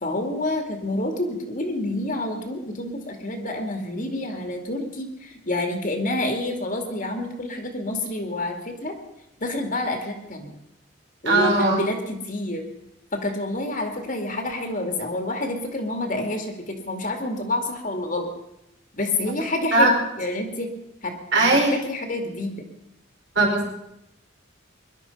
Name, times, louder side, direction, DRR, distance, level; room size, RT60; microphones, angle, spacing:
voice 1, 0.0-8.9 9.4-10.5 11.2-12.6 13.1-18.3 18.9-20.7 21.0-22.6, left 1 dB, 45° left, 4 dB, 2.3 m, -28 dB
voice 2, 11.2-11.8 19.7-19.9 21.3-21.7 23.3-23.7, right 2 dB, 65° right, 0 dB, 5.1 m, -19 dB
21.5 x 12.0 x 5.5 m, 0.84 s
head